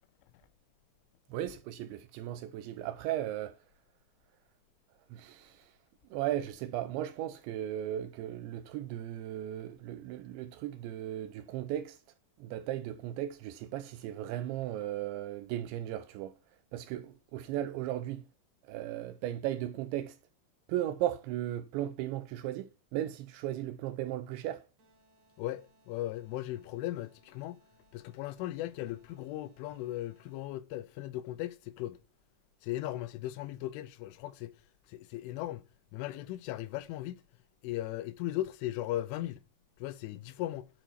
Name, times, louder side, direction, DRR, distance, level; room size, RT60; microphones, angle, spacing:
voice 1, 1.3-3.6 5.1-5.7 6.1-12.0 12.4-16.3 16.7-18.2 18.6-20.2 20.7-24.6, right 12 dB, 80° right, 2.7 m, -36 dB
sound 1, 24.8-30.8, right 2 dB, 50° right, 3.1 m, -68 dB
voice 2, 25.4-27.6 27.9-32.0 32.6-34.5 34.9-35.6 35.9-37.2 37.6-39.4 39.8-40.7, left 15 dB, 80° left, 3.1 m, -37 dB
10.5 x 6.4 x 5.8 m
omnidirectional pair, 5.7 m